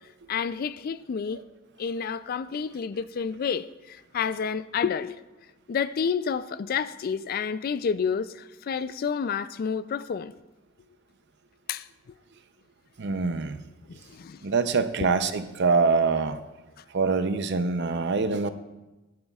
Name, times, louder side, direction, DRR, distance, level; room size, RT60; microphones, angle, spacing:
voice 1, 0.3-1.4 1.8-5.2 5.7-10.3 11.7-11.8 13.9-14.4, left 6 dB, 45° left, 0.3 m, -29 dB
voice 2, 13.0-13.6 14.4-16.4 16.9-18.5, right 4 dB, 55° right, 0.6 m, -24 dB
19.0 x 9.5 x 2.4 m
head